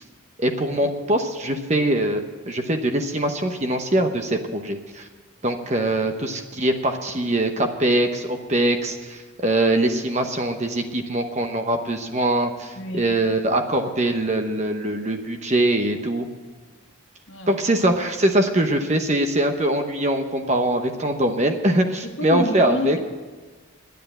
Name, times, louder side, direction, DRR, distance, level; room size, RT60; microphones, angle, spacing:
voice 1, 0.4-5.1 5.4-16.3 17.5-23.0, right 1 dB, 35° right, 6 dB, 1.0 m, -22 dB
voice 2, 12.7-13.2 17.3-17.6 22.0-23.1, left 1 dB, 70° left, 3 dB, 1.6 m, -29 dB
10.5 x 9.3 x 8.8 m, 1.4 s
head